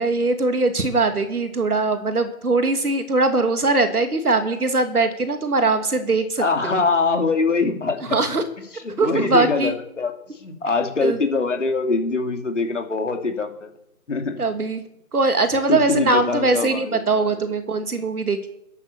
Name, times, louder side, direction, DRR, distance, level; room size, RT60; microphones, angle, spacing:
voice 1, 0.0-6.8 8.1-8.4 9.0-9.8 10.8-11.2 14.4-14.8 15.1-18.5, right 3 dB, 80° right, 7 dB, 2.8 m, -21 dB
voice 2, 6.4-8.1 8.8-10.1 10.4-13.7 14.1-14.4 15.7-17.3, left 4 dB, 55° left, 5 dB, 3.0 m, -23 dB
12.5 x 10.5 x 6.9 m, 0.83 s
figure-of-eight pair, 175°, 44 cm